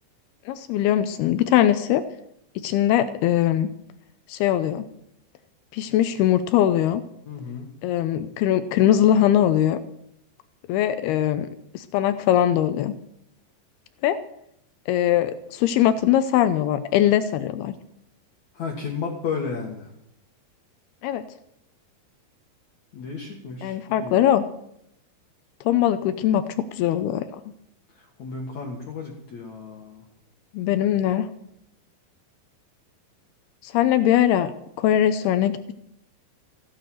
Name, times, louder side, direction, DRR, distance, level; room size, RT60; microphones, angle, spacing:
voice 1, 0.5-2.0 2.6-3.7 4.3-4.9 5.7-7.0 7.8-9.8 10.7-11.5 11.7-12.9 14.0-14.2 14.9-17.7 21.0-21.2 23.6-24.5 25.7-27.2 30.5-31.3 33.6-34.5 34.8-35.7, left 11 dB, 80° left, 11 dB, 2.3 m, -21 dB
voice 2, 7.3-7.7 18.5-19.9 22.9-24.1 28.2-30.0, left 5 dB, 55° left, 0 dB, 2.3 m, -33 dB
15.0 x 9.8 x 7.8 m, 0.76 s
omnidirectional pair, 5.2 m